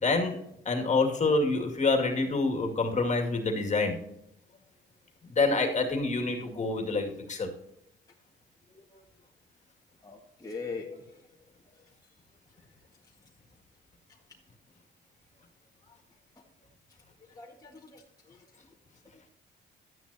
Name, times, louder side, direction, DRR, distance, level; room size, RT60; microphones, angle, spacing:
voice 1, 0.0-0.4 0.6-4.0 5.2-7.5 10.8-11.0, left 3 dB, 35° left, 2 dB, 2.4 m, -27 dB
voice 2, 8.7-9.0 10.0-10.9 17.4-18.0 18.3-18.4, left 4 dB, 20° left, -2 dB, 1.8 m, -41 dB
12.5 x 9.4 x 2.9 m, 0.80 s
cardioid pair, 90°, 20 cm